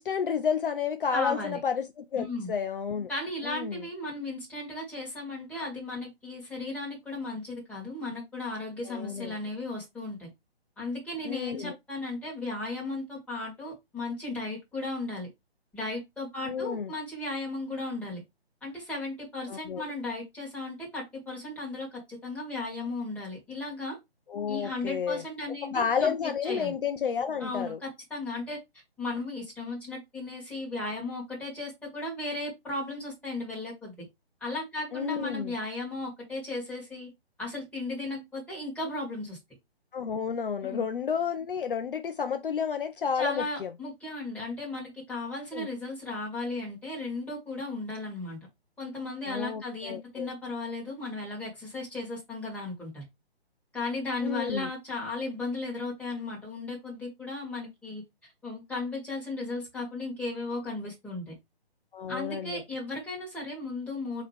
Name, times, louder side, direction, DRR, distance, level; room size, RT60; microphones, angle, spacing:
voice 1, 0.0-3.1 3.4-3.8 8.8-9.4 11.2-11.7 16.5-16.9 19.5-19.8 24.3-25.2 25.6-27.8 34.9-35.5 39.9-43.7 45.5-45.7 49.2-50.3 54.2-54.7 61.9-62.6, left 7 dB, 55° left, 0.5 m, -31 dB
voice 2, 1.1-1.6 2.2-2.5 3.1-10.3 10.8-15.3 15.7-18.2 18.6-24.0 24.5-26.7 27.4-28.6 29.0-34.1 34.4-37.1 37.4-39.4 40.6-40.8 43.1-48.4 48.8-53.0 53.7-58.0 58.4-61.3 62.1-64.3, left 2 dB, 5° left, 1.6 m, -35 dB
4.7 x 2.9 x 3.3 m
figure-of-eight pair, 135°, 31 cm